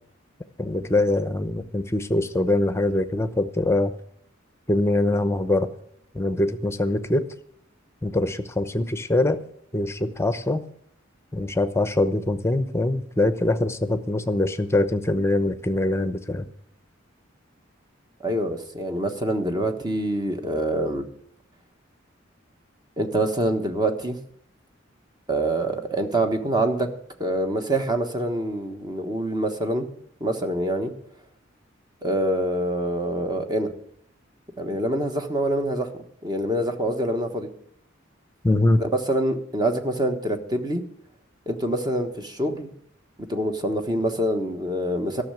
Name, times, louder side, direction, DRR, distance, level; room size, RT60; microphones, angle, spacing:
voice 1, 0.6-3.9 4.7-5.7 6.1-7.3 8.0-9.4 9.7-10.6 11.3-16.5 38.4-38.8, left 2 dB, 15° left, 10 dB, 0.8 m, -23 dB
voice 2, 18.2-21.1 23.0-24.2 25.3-26.9 27.2-29.9 30.2-30.9 32.0-33.7 34.6-37.5 38.8-40.8 41.5-42.7 43.3-45.2, right 1 dB, 20° right, 6 dB, 1.3 m, -25 dB
14.0 x 6.6 x 9.0 m, 0.68 s
head